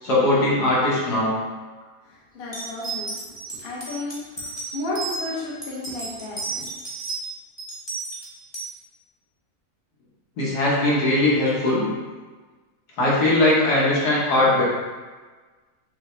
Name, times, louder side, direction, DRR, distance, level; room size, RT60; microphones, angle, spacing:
voice 1, 0.0-1.3 10.4-11.9 13.0-14.6, left 1 dB, 80° left, -6 dB, 1.7 m, -20 dB
voice 2, 2.0-3.2 3.6-6.7, left 2 dB, 45° left, -5 dB, 1.0 m, -33 dB
sound 1, 2.5-5.2 5.6-7.3 7.6-8.7, right 3 dB, 20° left, 0.8 m, -32 dB
5.6 x 2.3 x 3.2 m, 1.4 s
omnidirectional pair, 1.7 m